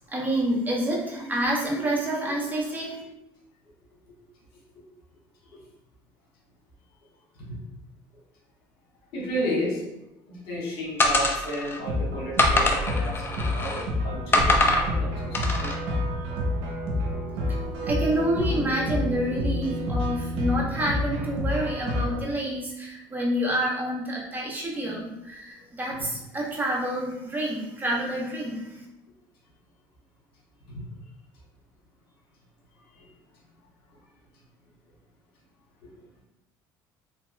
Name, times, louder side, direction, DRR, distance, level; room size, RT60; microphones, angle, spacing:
voice 1, 0.1-3.0 17.9-28.8, right 1 dB, 20° right, -3 dB, 0.9 m, -28 dB
voice 2, 9.1-9.8 10.3-15.7, equal, 70° left, -4 dB, 1.4 m, -32 dB
sound 1, 11.0-11.8 12.4-13.9 14.3-14.9 15.3-15.8, left 1 dB, 25° left, 0.5 m, -23 dB
sound 2, 11.8-22.2, left 1 dB, 85° right, 0.8 m, -29 dB
3.3 x 2.8 x 2.2 m, 0.90 s
supercardioid pair, 100°, 9 cm